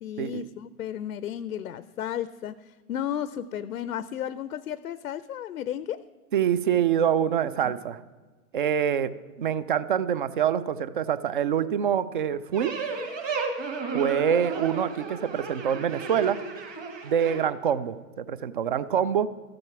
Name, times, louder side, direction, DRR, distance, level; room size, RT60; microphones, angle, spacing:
voice 1, 0.0-6.0 7.6-7.7, left 10 dB, 80° left, 16 dB, 0.6 m, -33 dB
voice 2, 6.3-8.0 8.5-9.1 9.4-12.7 13.9-16.4 17.0-19.3, right 8 dB, 40° right, 16 dB, 0.4 m, -25 dB
sound 1, 12.5-17.4, right 4 dB, 20° right, 1.4 m, -33 dB
14.0 x 7.7 x 5.9 m, 1.3 s
hypercardioid pair, 130°, 44 cm